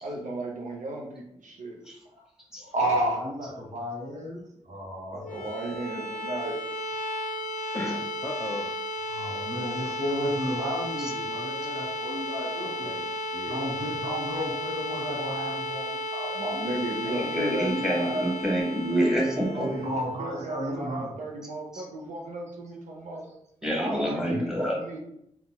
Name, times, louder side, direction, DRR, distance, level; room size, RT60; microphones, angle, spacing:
voice 1, 0.0-1.8 5.1-6.6 16.3-18.3 19.5-23.3 23.8-25.0, right 2 dB, 80° right, 0 dB, 0.6 m, -34 dB
voice 2, 2.6-5.4 9.1-12.9 13.5-16.4 17.1-17.2 19.5-21.1, equal, 60° right, -2 dB, 1.0 m, -32 dB
sound 1, 5.2-21.0, left 1 dB, 80° left, 0.5 m, -34 dB
voice 3, 7.7-8.7 12.8-13.7 24.2-24.5, left 1 dB, 15° left, 2 dB, 0.4 m, -36 dB
voice 4, 17.1-19.7 21.7-21.8 23.6-24.8, equal, 5° right, -3 dB, 1.2 m, -27 dB
3.9 x 2.2 x 2.2 m, 0.77 s
cardioid pair, 55°, 13 cm